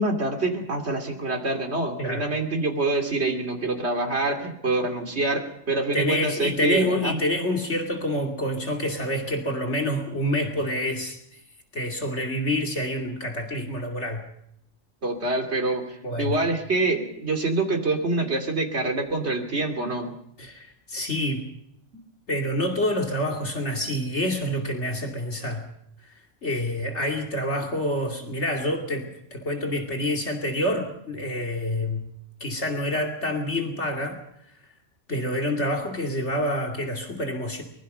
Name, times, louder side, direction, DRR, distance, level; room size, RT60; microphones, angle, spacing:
voice 1, 0.0-7.2 15.0-20.1, right 2 dB, 60° right, 4 dB, 3.0 m, -26 dB
voice 2, 5.9-11.2 11.7-14.2 16.0-16.4 20.4-21.4 22.3-25.7 26.4-32.1 32.4-34.2 35.1-37.6, left 1 dB, 65° left, 3 dB, 2.9 m, -27 dB
23.5 x 21.5 x 5.5 m, 0.75 s
omnidirectional pair, 1.3 m